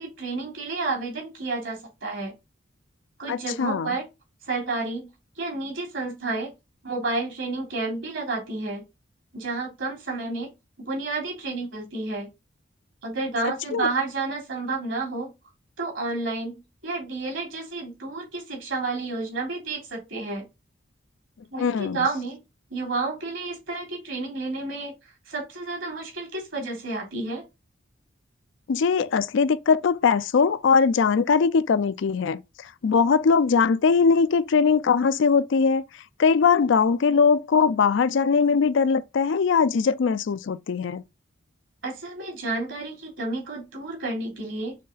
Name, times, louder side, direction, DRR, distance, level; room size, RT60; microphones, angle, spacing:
voice 1, 0.0-2.3 3.2-4.1 4.5-5.1 5.4-6.5 6.8-8.8 9.3-10.5 10.8-12.3 13.0-15.3 15.8-20.4 21.5-22.4 22.7-24.9 25.3-27.4 41.8-44.8, right 3 dB, 70° right, 3.5 m, -30 dB
voice 2, 3.3-3.9 13.7-13.9 21.6-22.0 28.7-32.4 32.8-35.8 36.2-41.0, left 5 dB, 65° left, 0.4 m, -21 dB
6.4 x 3.7 x 4.0 m
head